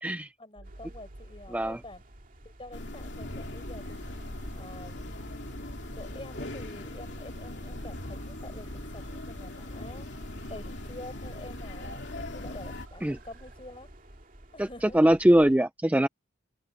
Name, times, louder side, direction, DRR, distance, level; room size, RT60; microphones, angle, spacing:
voice 1, 0.4-2.0 2.4-4.1 4.5-5.2 5.9-13.9 14.5-15.1, left 1 dB, 30° left, 5.1 m, -47 dB
sound 1, 0.6-15.6, right 1 dB, 45° right, 2.5 m, -53 dB
sound 2, 0.6-13.6, right 1 dB, 90° right, 1.3 m, -50 dB
sound 3, 2.7-12.9, left 1 dB, 65° left, 2.8 m, -40 dB
voice 2, 14.6-16.1, right 1 dB, 10° right, 0.4 m, -22 dB
open air
head